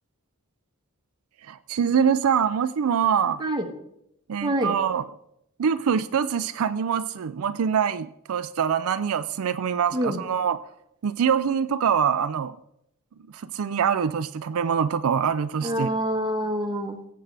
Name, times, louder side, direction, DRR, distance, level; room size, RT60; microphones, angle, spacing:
voice 1, 1.5-3.4 4.3-5.1 5.6-10.6 11.0-12.5 13.3-15.9, right 7 dB, 75° right, 12 dB, 0.4 m, -24 dB
voice 2, 4.4-4.7 9.9-10.2 15.6-17.0, right 1 dB, 20° right, 2 dB, 1.3 m, -26 dB
17.5 x 7.7 x 3.4 m, 0.77 s
head